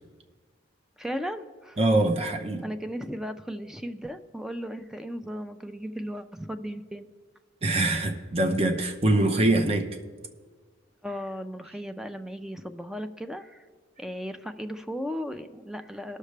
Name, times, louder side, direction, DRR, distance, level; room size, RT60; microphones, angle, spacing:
voice 1, 1.0-1.8 2.6-7.1 11.0-13.6 14.0-16.2, equal, 5° right, 8 dB, 0.4 m, -36 dB
voice 2, 1.8-2.7 7.6-9.9, right 2 dB, 30° right, 4 dB, 0.8 m, -23 dB
19.0 x 6.5 x 3.3 m, 1.5 s
head